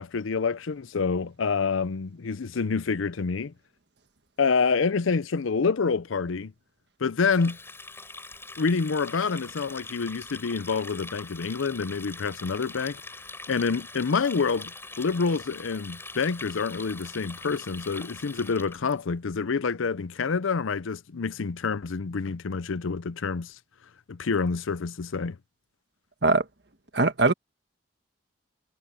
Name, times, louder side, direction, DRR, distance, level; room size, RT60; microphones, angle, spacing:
voice 1, 0.0-3.5 4.4-6.5 7.0-7.6 8.6-13.0 13.5-23.5 24.1-25.4, left 5 dB, 90° left, 0.6 m, -27 dB
Water tap faucet, 7.3-18.9, left 3 dB, 10° left, 4.0 m, -43 dB
voice 2, 26.9-27.3, right 3 dB, 55° right, 1.6 m, -21 dB
head